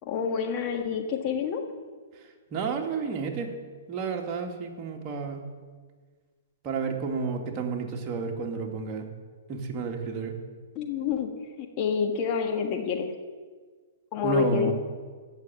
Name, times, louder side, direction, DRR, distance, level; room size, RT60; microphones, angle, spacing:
voice 1, 0.0-1.6 10.7-13.1 14.1-14.7, left 7 dB, 35° left, 3 dB, 1.5 m, -28 dB
voice 2, 2.5-3.5 3.9-5.5 6.6-9.1 9.5-10.3 14.2-14.7, right 5 dB, 35° right, 2 dB, 2.0 m, -31 dB
16.0 x 6.7 x 7.6 m, 1.5 s
figure-of-eight pair, 115°, 0 cm